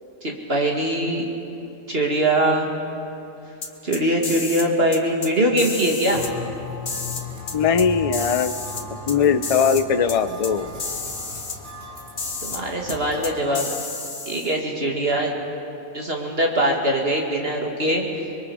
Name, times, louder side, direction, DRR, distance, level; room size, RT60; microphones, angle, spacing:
voice 1, 0.2-1.3 1.9-2.7 3.8-6.3 12.4-13.7 14.3-15.3 15.9-18.3, right 1 dB, 45° right, 0 dB, 2.6 m, -22 dB
sound 1, 3.6-4.7 4.9-5.3 5.6-6.3 6.9-7.9 8.1-9.2 9.4-9.8 10.1-10.2 10.4-10.5 10.8-11.6 12.2-12.6 12.9-13.0 13.2-14.6, left 4 dB, 65° left, 1.8 m, -31 dB
sound 2, 6.1-13.4, left 2 dB, 90° right, 4.9 m, -37 dB
voice 2, 7.5-8.5 9.1-10.7, left 6 dB, 35° left, 10 dB, 0.6 m, -20 dB
30.0 x 22.0 x 5.0 m, 2.9 s
omnidirectional pair, 1.4 m